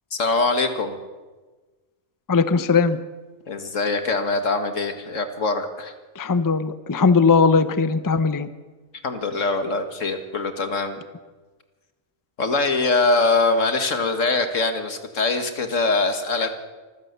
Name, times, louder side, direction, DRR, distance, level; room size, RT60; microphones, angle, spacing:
voice 1, 0.1-1.0 3.5-5.9 9.0-11.0 12.4-16.5, left 3 dB, 75° left, 7 dB, 2.1 m, -23 dB
voice 2, 2.3-3.0 6.2-8.5, left 4 dB, 20° left, 12 dB, 0.6 m, -19 dB
25.0 x 15.5 x 6.8 m, 1.3 s
omnidirectional pair, 1.3 m